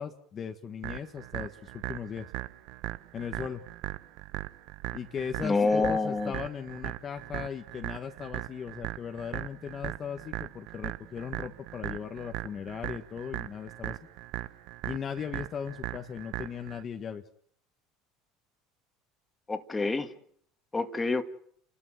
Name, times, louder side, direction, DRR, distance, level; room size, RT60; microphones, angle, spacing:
voice 1, 0.0-2.3 3.1-3.6 4.9-14.0 14.8-17.2, left 7 dB, 40° left, 5 dB, 1.7 m, -38 dB
sound 1, 0.8-16.8, right 17 dB, 70° right, 0.9 m, -39 dB
voice 2, 5.4-6.3 19.5-20.1 20.7-21.2, left 3 dB, 15° left, 7 dB, 2.1 m, -27 dB
30.0 x 13.0 x 7.6 m, 0.64 s
supercardioid pair, 90°, 0 cm